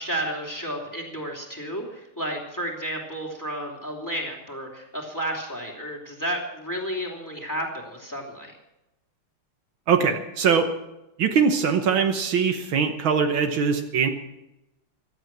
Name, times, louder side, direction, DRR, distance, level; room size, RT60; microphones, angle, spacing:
voice 1, 0.0-8.5, right 1 dB, 10° left, 0 dB, 2.8 m, -32 dB
voice 2, 9.9-10.7 11.2-14.1, right 6 dB, 70° right, 6 dB, 1.8 m, -22 dB
16.0 x 12.5 x 6.0 m, 0.92 s
omnidirectional pair, 2.3 m